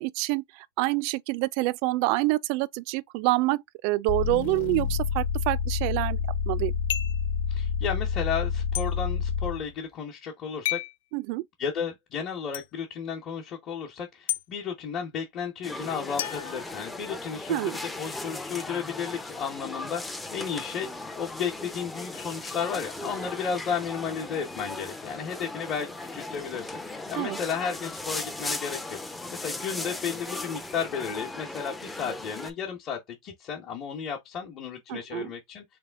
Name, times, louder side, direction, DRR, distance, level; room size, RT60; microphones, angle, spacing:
voice 1, 0.0-6.2 6.5-6.7 11.1-11.4 17.5-17.8 27.2-27.4 34.9-35.3, right 20 dB, 50° right, 0.3 m, -27 dB
sound 1, 4.1-9.7, left 7 dB, 65° left, 1.2 m, -28 dB
sound 2, 6.9-7.3 8.7-8.9 10.6-11.0 12.5-12.7 14.3-14.4 16.2-17.3, left 13 dB, 80° left, 0.3 m, -32 dB
voice 2, 7.5-10.8 11.6-29.0 29.3-35.6, left 7 dB, 30° left, 1.0 m, -33 dB
sound 3, 15.6-32.5, left 2 dB, 5° left, 0.5 m, -37 dB
3.4 x 3.2 x 3.5 m
supercardioid pair, 155°, 0 cm